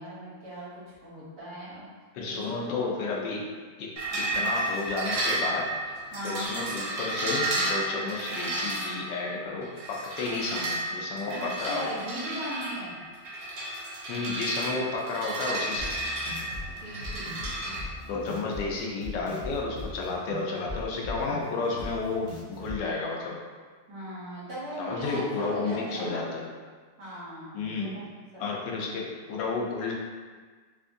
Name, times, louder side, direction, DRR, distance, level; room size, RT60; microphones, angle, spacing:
voice 1, 0.0-1.9 2.2-2.9 4.1-4.3 6.1-6.5 11.3-13.0 16.7-18.0 23.9-26.2 27.0-28.0 28.3-28.4, equal, 60° right, -8 dB, 1.4 m, -39 dB
voice 2, 2.1-3.4 3.8-3.9 4.1-6.0 6.2-11.9 14.1-16.1 18.0-23.4 24.8-26.5 27.5-28.0 28.4-29.9, left 3 dB, 85° left, -2 dB, 1.2 m, -32 dB
sound 1, 4.0-17.8, right 1 dB, 80° right, 1.2 m, -32 dB
sound 2, 15.8-22.8, left 1 dB, 65° left, 0.4 m, -40 dB
3.6 x 2.5 x 2.5 m, 1.5 s
omnidirectional pair, 1.9 m